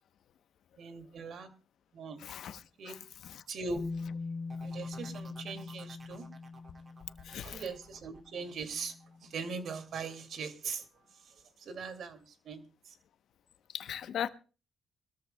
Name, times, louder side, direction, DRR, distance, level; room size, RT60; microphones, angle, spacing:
voice 1, 0.8-1.5 1.9-2.2 2.8-2.9 3.5-3.8 4.6-6.3 7.4-8.9 9.2-12.9, right 4 dB, 65° right, 2.3 m, -41 dB
voice 2, 2.2-2.6 2.9-3.0 3.2-3.4 7.2-7.6 13.7-14.3, left 9 dB, 70° left, 0.8 m, -38 dB
Bass guitar, 3.8-9.8, left 4 dB, 20° left, 3.4 m, -43 dB
sound 1, 4.5-10.1 10.5-11.0, right 3 dB, 30° right, 2.3 m, -56 dB
24.0 x 13.5 x 2.2 m
cardioid pair, 90°, 0 cm